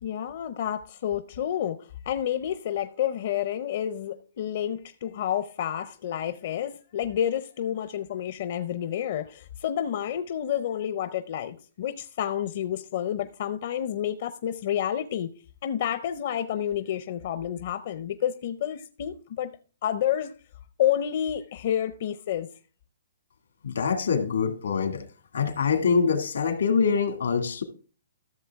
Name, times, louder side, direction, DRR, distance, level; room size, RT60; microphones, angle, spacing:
voice 1, 0.0-15.3 15.6-19.5 19.8-20.4 20.8-22.5, left 10 dB, 55° left, 0.6 m, -29 dB
voice 2, 23.6-25.0 25.3-27.6, left 5 dB, 85° left, 2.1 m, -24 dB
13.5 x 7.1 x 3.5 m
hypercardioid pair, 145°, 0 cm